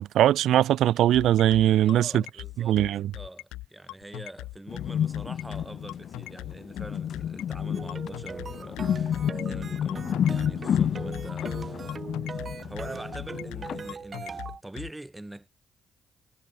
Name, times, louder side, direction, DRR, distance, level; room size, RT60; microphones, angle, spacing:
voice 1, 0.0-2.2 2.6-3.1, right 12 dB, 75° right, 0.4 m, -21 dB
sound 1, 1.1-14.9, left 19 dB, 85° left, 7.9 m, -40 dB
voice 2, 1.8-2.8 3.1-15.5, right 1 dB, 15° right, 6.7 m, -44 dB
sound 2, 4.7-13.9, left 9 dB, 65° left, 0.7 m, -30 dB
sound 3, 7.7-14.6, right 5 dB, 50° right, 7.0 m, -40 dB
supercardioid pair, 50°, 0 cm